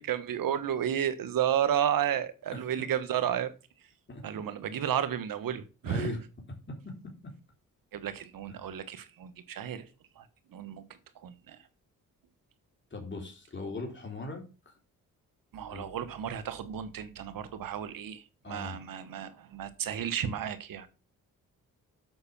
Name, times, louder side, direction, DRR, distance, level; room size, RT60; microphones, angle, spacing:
voice 1, 0.0-3.5 4.2-6.1 7.9-9.9 10.1-10.8 11.1-11.6 15.5-20.9, right 9 dB, 75° right, 1.3 m, -32 dB
voice 2, 5.9-6.2 6.7-7.1 8.6-8.8 12.9-14.7 15.7-15.9 18.4-18.8, left 2 dB, 35° left, 3.4 m, -39 dB
7.8 x 5.7 x 7.1 m
cardioid pair, 70°, 34 cm